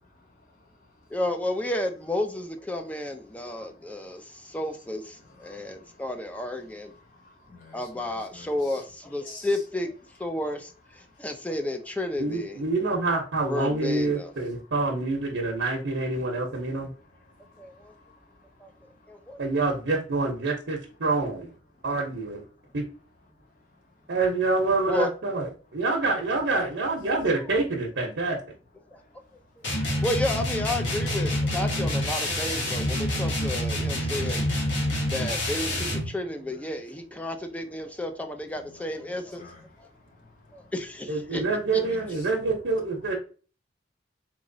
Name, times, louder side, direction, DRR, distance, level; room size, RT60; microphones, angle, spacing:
voice 1, 0.0-1.2 3.4-4.6 5.2-6.2 6.7-8.8 9.2-9.5 11.0-11.3 16.9-19.4 21.7-21.8 22.6-22.8 23.3-24.1 28.9-30.0 36.5-36.6 38.5-40.7 41.3-41.4 41.7-42.3, left 2 dB, 50° left, 1.2 m, -53 dB
voice 2, 1.1-6.9 7.7-12.6 13.5-14.3 17.6-17.9 18.6-18.7 19.1-19.4 24.9-25.1 28.9-29.0 30.0-34.5 35.1-39.5 39.8-39.9 40.5-41.4 41.7-41.8, left 1 dB, 10° left, 0.4 m, -32 dB
voice 3, 12.2-16.9 19.4-21.5 21.8-22.4 22.7-22.8 24.1-28.4 41.1-43.1, right 3 dB, 80° right, 0.7 m, -26 dB
sound 1, 29.6-36.1, left 1 dB, 75° left, 1.2 m, -27 dB
3.6 x 3.0 x 2.6 m
head